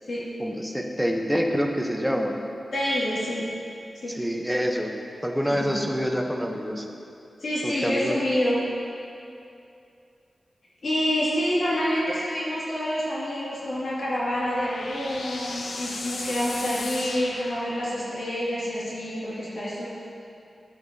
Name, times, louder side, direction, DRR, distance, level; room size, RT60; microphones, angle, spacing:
voice 1, 0.4-2.3 4.1-4.9 5.2-6.9 7.6-8.2, equal, 5° right, 1 dB, 0.7 m, -26 dB
voice 2, 2.7-3.5 3.9-4.2 5.5-5.8 7.4-8.6 10.8-19.9, equal, 65° left, -9 dB, 2.1 m, -27 dB
sound 1, 13.7-18.2, left 3 dB, 90° left, 0.7 m, -37 dB
12.0 x 7.7 x 2.7 m, 2.6 s
wide cardioid pair, 125°, 0 cm